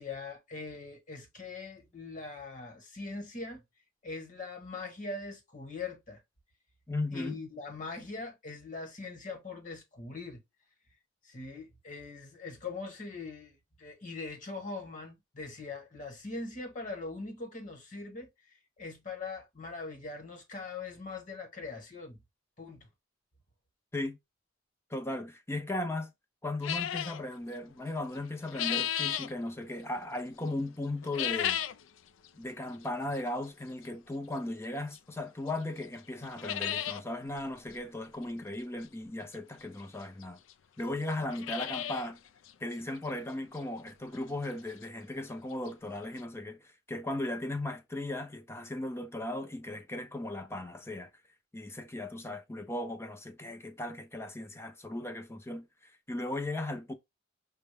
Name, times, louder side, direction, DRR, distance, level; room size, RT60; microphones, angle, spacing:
voice 1, 0.0-3.6 4.0-6.2 7.1-10.4 11.2-22.2 22.6-22.9, left 3 dB, 40° left, 1.2 m, -42 dB
voice 2, 6.9-7.4 23.9-24.2 24.9-26.1 26.4-31.6 32.3-40.4 40.8-42.2 42.6-46.6 46.9-51.1 51.5-55.7 56.1-56.9, left 1 dB, 15° left, 0.6 m, -37 dB
sound 1, 26.6-27.2 28.2-29.3 31.0-31.8 32.2-32.3 33.2-33.3 34.9-35.0 35.5-35.6 35.8-35.9 36.2-37.0 37.4-37.5 37.7-37.8 39.3-39.4 40.2-40.3 40.5-40.6 41.1-42.1 42.5-42.6 43.1-43.2 43.6-43.7 45.4-45.5 45.7-45.8 46.2-46.3, left 10 dB, 85° left, 0.4 m, -33 dB
6.1 x 2.2 x 3.3 m
head